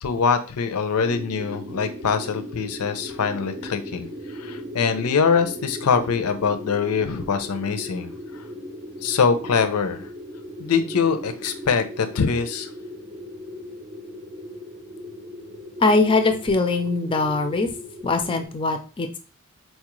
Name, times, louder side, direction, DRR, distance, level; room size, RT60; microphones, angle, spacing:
voice 1, 0.0-8.4 9.0-10.1 10.6-12.7, left 5 dB, 90° left, 9 dB, 0.5 m, -23 dB
sound 1, 1.0-18.5, equal, 40° right, 0.5 m, -38 dB
voice 2, 15.8-17.7 18.0-19.2, left 3 dB, 25° left, 7 dB, 0.3 m, -21 dB
4.3 x 2.3 x 3.0 m, 0.37 s
head